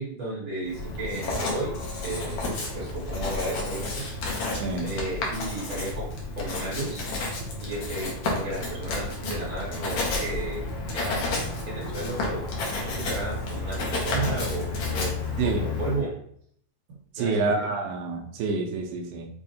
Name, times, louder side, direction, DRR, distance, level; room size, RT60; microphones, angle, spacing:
voice 1, 0.0-1.7 2.0-3.9 4.8-6.1 6.4-7.0 7.6-10.6 10.9-11.2 11.7-12.4 12.8-15.1 15.6-16.1 17.2-17.7, right 2 dB, 55° right, -7 dB, 2.5 m, -33 dB
Writing, 0.7-16.0, left 3 dB, 70° left, 1.5 m, -31 dB
voice 2, 4.5-4.9 15.4-15.7 17.1-19.3, right 4 dB, 80° right, 2 dB, 2.1 m, -28 dB
6.2 x 2.4 x 2.7 m, 0.63 s
omnidirectional pair, 3.7 m